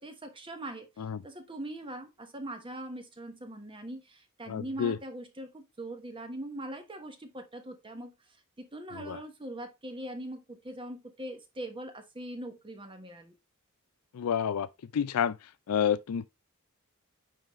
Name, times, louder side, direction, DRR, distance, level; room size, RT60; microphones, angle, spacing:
voice 1, 0.0-0.9 1.2-8.1 8.6-13.3, right 1 dB, 25° right, 1.2 m, -41 dB
voice 2, 4.5-5.0 8.9-9.2 14.1-14.7 14.9-15.4 15.7-16.3, left 8 dB, 85° left, 0.4 m, -29 dB
9.0 x 3.9 x 3.1 m
head